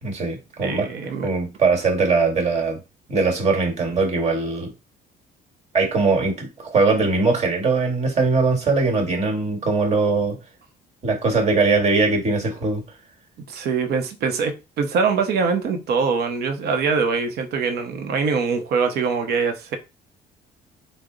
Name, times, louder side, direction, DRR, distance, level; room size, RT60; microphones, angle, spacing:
voice 1, 0.0-0.9 1.2-2.8 3.1-4.7 5.7-10.4 11.0-12.8, right 3 dB, 40° right, 1.5 m, -21 dB
voice 2, 0.6-1.3 13.5-19.8, right 5 dB, 70° right, 0.8 m, -23 dB
3.6 x 2.1 x 3.8 m
cardioid pair, 110°, 17 cm